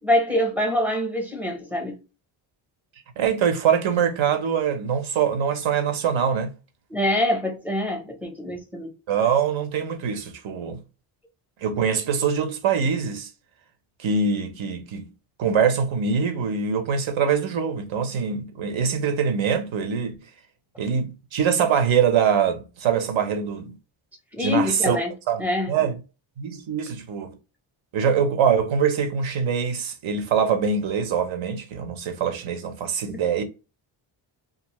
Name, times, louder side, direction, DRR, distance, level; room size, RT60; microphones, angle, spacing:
voice 1, 0.0-2.0 6.9-8.9 24.3-25.1 25.4-25.9 33.1-33.2, left 1 dB, 5° right, 0.6 m, -25 dB
voice 2, 3.2-6.5 9.1-10.8 11.6-13.3 14.0-15.1 15.4-20.1 20.8-23.8 24.4-25.0 25.3-25.4 25.7-26.0 26.4-27.3 27.9-33.4, right 7 dB, 65° right, 0.8 m, -23 dB
2.5 x 2.5 x 2.9 m
wide cardioid pair, 170°, 49 cm